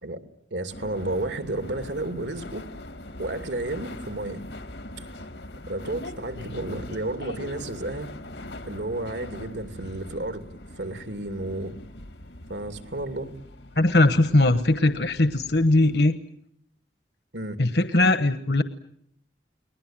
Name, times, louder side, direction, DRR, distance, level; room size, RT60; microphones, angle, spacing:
voice 1, 0.5-2.7 3.2-4.4 5.0-5.3 5.7-8.1 8.7-10.4 10.8-11.7 12.5-13.3 17.3-17.6, right 2 dB, 90° right, 8 dB, 2.6 m, -32 dB
sound 1, 0.7-16.0, left 1 dB, 85° left, 2.0 m, -41 dB
voice 2, 13.8-16.1 17.6-18.6, left 2 dB, 65° left, 11 dB, 1.2 m, -20 dB
30.0 x 21.0 x 8.9 m, 0.70 s
head